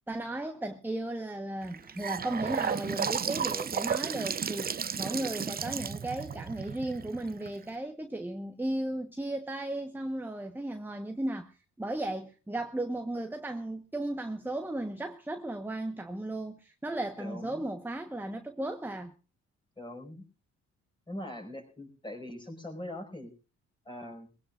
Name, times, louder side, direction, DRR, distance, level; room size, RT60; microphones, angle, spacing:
voice 1, 0.1-19.1, right 1 dB, 5° right, 1.1 m, -35 dB
Gurgling / Sink (filling or washing) / Bathtub (filling or washing), 1.6-7.7, right 7 dB, 30° right, 0.7 m, -33 dB
voice 2, 5.6-6.0 17.2-17.6 19.8-20.2 21.1-23.3 23.9-24.3, left 1 dB, 15° left, 5.2 m, -42 dB
21.5 x 17.0 x 2.5 m
cardioid pair, 90°, 30 cm